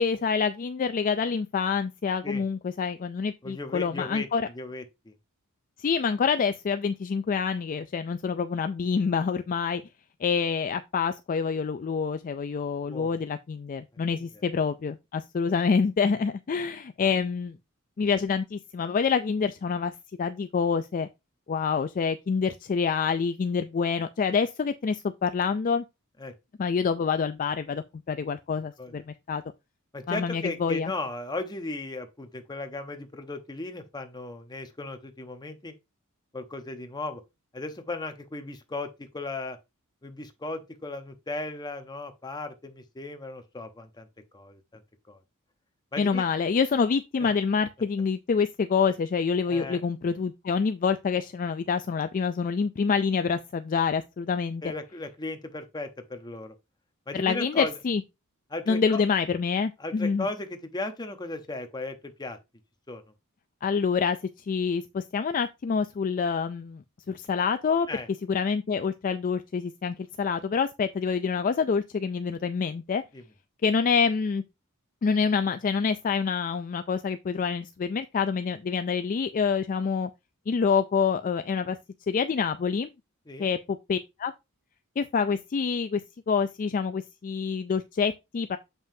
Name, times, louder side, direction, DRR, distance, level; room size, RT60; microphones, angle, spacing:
voice 1, 0.0-4.5 5.8-9.8 10.2-17.5 18.0-19.9 20.2-21.1 21.5-25.8 26.6-29.4 30.1-30.9 46.0-54.6 57.1-58.0 58.7-60.3 63.6-64.2 64.5-67.9 68.3-73.0 73.6-74.4 75.0-80.1 80.5-81.8 82.1-82.9 83.4-84.3 85.0-86.0 86.3-88.6, left 5 dB, 40° left, 0.3 m, -27 dB
voice 2, 3.4-5.1 12.9-13.2 14.1-14.2 26.2-26.3 28.8-28.9 29.9-35.7 36.3-37.2 37.5-39.6 40.0-44.1 44.3-44.8 45.1-45.2 45.9-46.2 47.2-47.3 49.5-49.8 54.6-56.5 57.1-57.8 58.5-59.0 59.8-62.4 62.9-63.0 67.9-68.1 73.1-73.2 83.3-83.5, left 2 dB, 20° left, 0.8 m, -36 dB
7.4 x 5.4 x 2.7 m
head